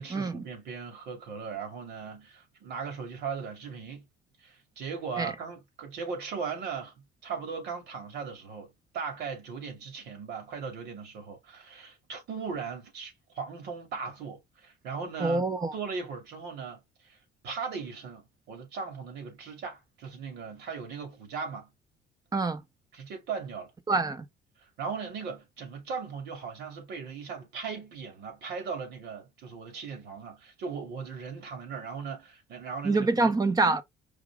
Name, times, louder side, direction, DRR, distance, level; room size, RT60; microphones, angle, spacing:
voice 1, 0.0-4.1 4.4-17.2 17.4-21.7 22.9-23.7 24.6-33.3, right 5 dB, 75° right, 2.5 m, -38 dB
voice 2, 15.2-15.7 22.3-22.6 23.9-24.2 32.8-33.8, right 3 dB, 20° right, 0.8 m, -25 dB
4.9 x 2.8 x 3.5 m
cardioid pair, 110°, 17 cm